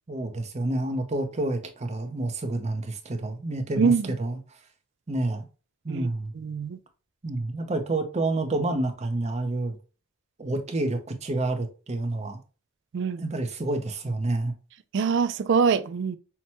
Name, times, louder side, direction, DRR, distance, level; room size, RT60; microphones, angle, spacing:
voice 1, 0.1-4.4 5.1-5.4 5.8-6.3 7.2-9.8 10.4-12.4 13.2-14.5, right 2 dB, 30° right, 0.7 m, -29 dB
voice 2, 3.8-4.1 5.9-6.1 6.4-6.8 12.9-13.3 14.9-16.2, right 5 dB, 60° right, 0.4 m, -24 dB
5.8 x 2.2 x 2.9 m
head